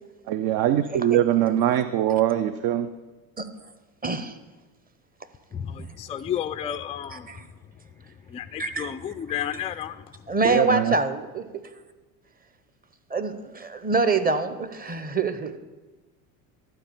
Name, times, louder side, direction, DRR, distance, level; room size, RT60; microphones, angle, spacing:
voice 1, 0.3-2.9 10.4-10.9, right 11 dB, 55° right, 0.6 m, -22 dB
voice 2, 4.0-4.3 7.3-7.5 8.6-8.8 10.3-11.7 13.1-15.6, right 3 dB, 20° right, 0.9 m, -25 dB
voice 3, 5.5-7.4 7.7-10.3, left 9 dB, 15° left, 0.3 m, -33 dB
12.0 x 4.5 x 7.3 m
hypercardioid pair, 75°, 47 cm